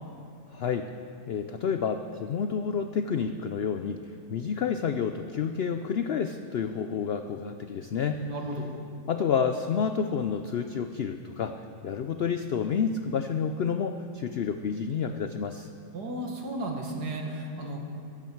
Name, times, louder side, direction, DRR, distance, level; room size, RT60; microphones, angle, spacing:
voice 1, 0.5-0.9 1.3-4.0 4.3-8.2 9.1-11.6 11.8-15.7, left 6 dB, 80° left, 8 dB, 0.5 m, -29 dB
voice 2, 8.1-8.7 15.9-17.8, right 1 dB, 85° right, 1 dB, 2.3 m, -34 dB
16.5 x 14.0 x 4.6 m, 2.4 s
omnidirectional pair, 1.7 m